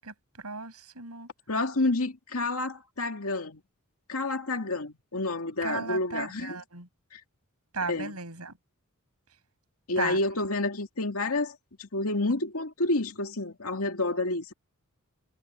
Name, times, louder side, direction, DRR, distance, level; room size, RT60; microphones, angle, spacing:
voice 1, 0.0-1.3 5.6-6.9 7.7-8.5 10.0-10.2, right 4 dB, 85° right, 6.5 m, -36 dB
voice 2, 1.5-3.6 4.1-6.6 7.1-7.2 7.8-8.2 9.9-14.5, left 2 dB, 70° left, 2.3 m, -29 dB
head